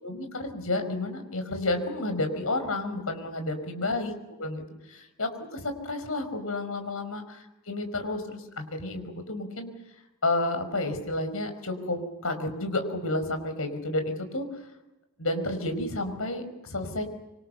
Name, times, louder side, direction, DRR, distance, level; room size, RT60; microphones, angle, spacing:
voice 1, 0.0-7.4 7.7-9.7 10.2-14.5 15.2-17.0, left 2 dB, 75° left, 8 dB, 5.3 m, -31 dB
26.0 x 26.0 x 6.8 m, 0.98 s
head